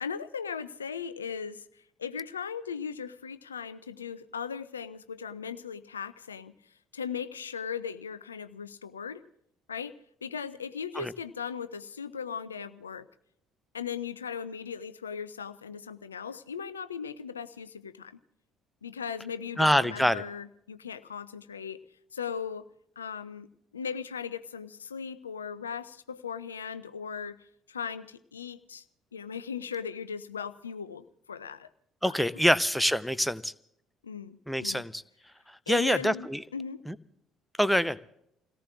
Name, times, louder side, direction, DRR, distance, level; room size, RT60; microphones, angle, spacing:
voice 1, 0.0-9.2 9.7-10.0 10.2-13.1 13.7-18.2 18.8-21.8 22.1-22.6 23.0-23.5 23.7-28.8 29.1-31.7 32.1-32.2 34.0-34.8 35.7-36.8, left 7 dB, 80° left, 14 dB, 0.5 m, -38 dB
voice 2, 19.6-20.2 32.0-33.5 34.5-35.0 35.5-36.4 36.9-37.0 37.6-38.0, equal, ahead, 16 dB, 0.7 m, -25 dB
29.5 x 18.0 x 2.4 m, 0.73 s
figure-of-eight pair, 50°, 0 cm